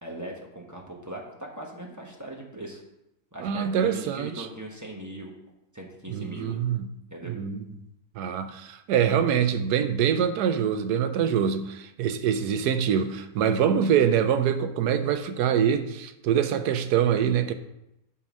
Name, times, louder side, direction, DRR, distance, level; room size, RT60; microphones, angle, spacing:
voice 1, 0.0-2.8 3.3-5.3 5.7-6.5 7.1-7.4, right 1 dB, 15° right, 0.8 m, -39 dB
voice 2, 3.4-4.5 6.1-6.9 7.3-7.5 8.2-17.5, right 8 dB, 75° right, 1.1 m, -24 dB
8.4 x 3.9 x 6.2 m
omnidirectional pair, 1.8 m